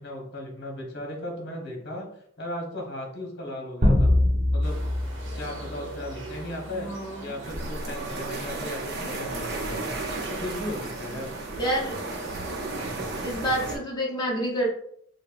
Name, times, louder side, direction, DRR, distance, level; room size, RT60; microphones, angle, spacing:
voice 1, 0.0-2.1 2.4-4.1 4.5-4.8 5.3-6.9 7.2-10.0 10.3-11.3, left 1 dB, 60° left, 0 dB, 1.1 m, -36 dB
sound 1, 3.8-6.4, left 1 dB, 35° right, 1.0 m, -23 dB
sound 2, 4.6-13.3, right 2 dB, 75° right, 0.9 m, -42 dB
voice 2, 6.7-7.3 11.6-12.0 13.2-14.7, right 1 dB, 20° left, -3 dB, 0.9 m, -28 dB
sound 3, 7.4-13.8, right 2 dB, 55° right, 0.7 m, -34 dB
5.2 x 2.2 x 2.5 m, 0.66 s
head